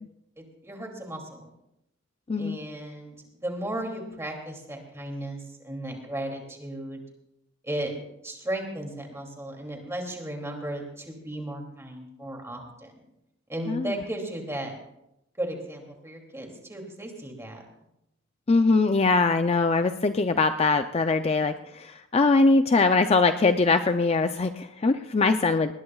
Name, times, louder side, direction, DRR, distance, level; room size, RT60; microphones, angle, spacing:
voice 1, 0.4-1.4 2.4-3.1 3.4-7.0 7.6-7.9 8.2-12.9 13.5-14.7 15.4-17.6, right 1 dB, 15° right, 1 dB, 2.6 m, -35 dB
voice 2, 18.5-25.7, left 3 dB, 30° left, 8 dB, 0.4 m, -22 dB
20.0 x 19.5 x 2.4 m, 0.83 s
head